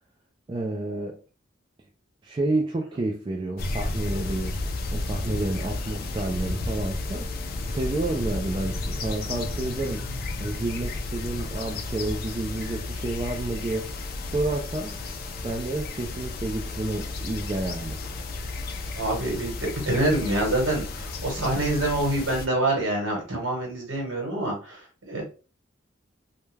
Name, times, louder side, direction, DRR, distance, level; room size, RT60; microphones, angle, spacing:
voice 1, 0.5-1.2 2.2-7.3 7.7-10.0 10.4-13.9 14.3-14.9 15.4-18.0, right 2 dB, 25° right, 0.3 m, -30 dB
sound 1, 3.6-22.5, left 2 dB, 50° left, 0.4 m, -32 dB
voice 2, 18.9-24.8 25.1-25.2, right 1 dB, 75° right, 1.1 m, -26 dB
2.2 x 2.2 x 3.1 m
head